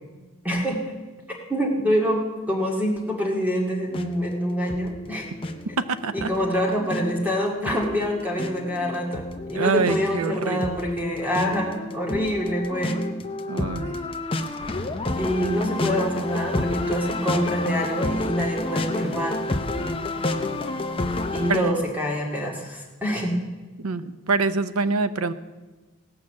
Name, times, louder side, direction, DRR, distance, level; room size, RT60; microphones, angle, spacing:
voice 1, 0.4-0.8 1.5-5.2 6.1-13.0 15.1-19.4 21.3-23.3, equal, 10° right, -1 dB, 2.1 m, -26 dB
sound 1, 3.9-21.6, left 2 dB, 25° left, 0.6 m, -30 dB
voice 2, 5.8-6.3 9.5-10.7 13.5-14.0 21.5-21.8 23.8-25.3, right 4 dB, 85° right, 12 dB, 0.7 m, -25 dB
17.0 x 6.0 x 7.5 m, 1.2 s
head